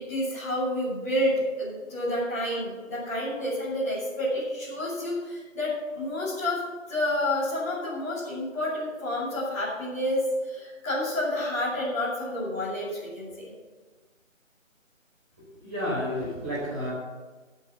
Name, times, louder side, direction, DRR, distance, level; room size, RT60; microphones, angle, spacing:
voice 1, 0.0-6.6 6.9-13.5, left 1 dB, 10° left, -11 dB, 2.7 m, -29 dB
voice 2, 15.6-16.9, left 1 dB, 10° right, -10 dB, 3.8 m, -30 dB
15.5 x 5.6 x 7.0 m, 1.3 s
figure-of-eight pair, 175°, 40 cm